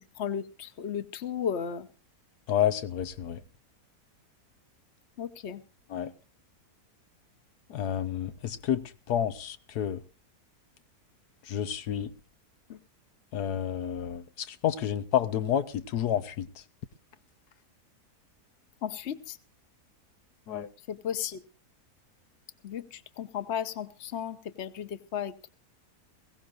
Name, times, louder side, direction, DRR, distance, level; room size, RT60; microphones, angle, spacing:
voice 1, 0.2-1.9 5.2-5.6 12.7-12.8 18.8-19.4 20.9-21.4 22.6-25.5, left 8 dB, 50° left, 1.2 m, -34 dB
voice 2, 2.5-3.4 5.9-6.1 7.7-10.0 11.5-12.1 13.3-16.5 20.5-20.7, left 10 dB, 90° left, 1.5 m, -30 dB
22.0 x 16.5 x 2.5 m
omnidirectional pair, 1.6 m